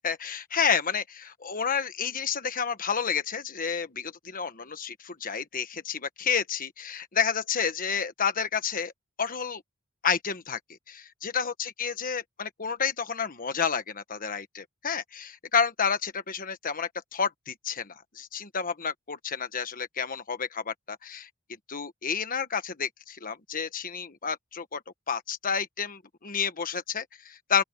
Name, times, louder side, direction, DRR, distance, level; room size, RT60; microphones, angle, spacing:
voice 1, 0.0-8.9 9.2-9.6 10.0-10.6 10.9-21.3 21.7-24.8 25.1-27.6, left 6 dB, 40° left, 1.4 m, -30 dB
open air
head